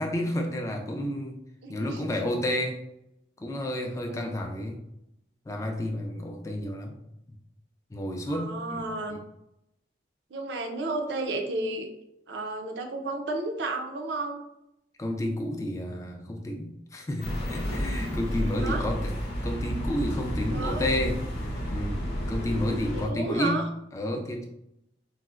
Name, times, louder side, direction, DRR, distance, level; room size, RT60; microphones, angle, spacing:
voice 1, 0.0-1.4 1.7-2.8 3.4-4.8 5.5-7.0 7.3-7.4 7.9-9.2 15.0-19.1 19.4-21.2 21.7-22.0 22.3-23.7 23.9-24.4, left 1 dB, 20° left, 3 dB, 0.3 m, -30 dB
voice 2, 1.6-2.0 4.0-4.3 8.3-9.2 10.3-11.9 12.3-14.4 18.6-18.8 20.5-20.9 22.9-23.6, right 2 dB, 90° right, 4 dB, 0.5 m, -32 dB
sound 1, 17.2-23.1, equal, 65° left, 0.7 m, -31 dB
4.0 x 2.0 x 2.4 m, 0.83 s
head